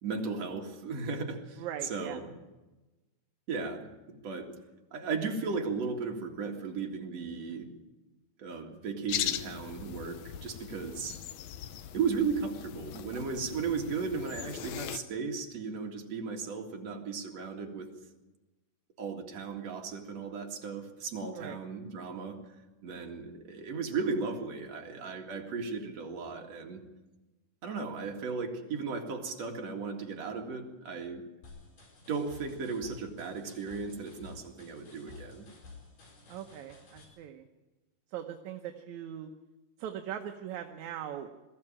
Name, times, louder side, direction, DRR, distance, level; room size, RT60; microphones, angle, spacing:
voice 1, 0.0-2.3 3.5-4.5 4.9-7.8 8.4-11.2 11.9-17.9 19.0-22.4 22.8-26.8 27.6-31.2 32.1-35.5, right 5 dB, 55° right, 1 dB, 3.2 m, -36 dB
voice 2, 1.6-2.2 21.3-21.6 23.0-23.1 36.3-37.5 38.1-39.3 39.8-41.3, right 10 dB, 70° right, 5 dB, 2.2 m, -40 dB
sound 1, 9.1-15.0, left 11 dB, 70° left, 1.9 m, -39 dB
sound 2, 31.4-37.1, left 3 dB, 85° left, 6.0 m, -52 dB
21.5 x 14.5 x 8.8 m, 1.1 s
omnidirectional pair, 3.7 m